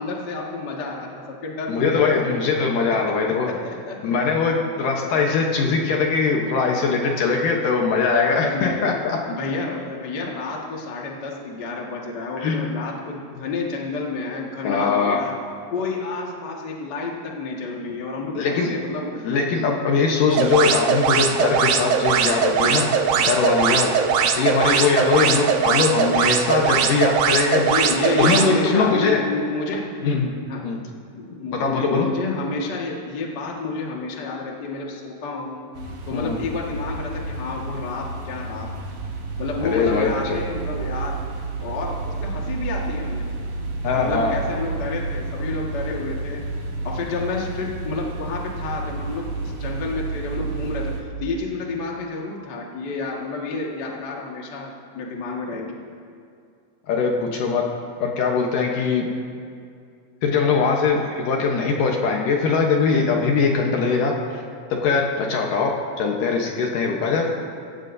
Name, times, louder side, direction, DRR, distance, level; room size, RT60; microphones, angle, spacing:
voice 1, 0.0-2.3 3.5-4.0 8.2-8.9 9.3-15.3 15.7-19.2 24.3-24.4 25.0-25.2 27.5-29.9 30.5-35.6 36.1-38.7 39.4-41.2 41.6-43.3 44.0-46.4 46.8-55.8, left 3 dB, 45° left, -2 dB, 1.3 m, -30 dB
voice 2, 1.7-3.5 4.0-9.2 12.4-12.7 14.6-15.2 18.4-18.7 19.1-22.9 23.3-23.9 24.4-27.7 28.2-29.2 30.0-30.3 30.6-30.8 31.5-32.1 36.1-36.4 39.6-40.4 43.8-44.4 56.9-57.6 58.0-59.1 60.2-64.4 64.8-67.3, left 5 dB, 70° left, 0 dB, 2.4 m, -21 dB
alarm signal, 20.3-28.5, right 6 dB, 80° right, 1.7 m, -20 dB
sound 1, 35.7-51.0, right 3 dB, 55° right, 2.3 m, -30 dB
25.0 x 15.5 x 2.7 m, 2.3 s
omnidirectional pair, 4.6 m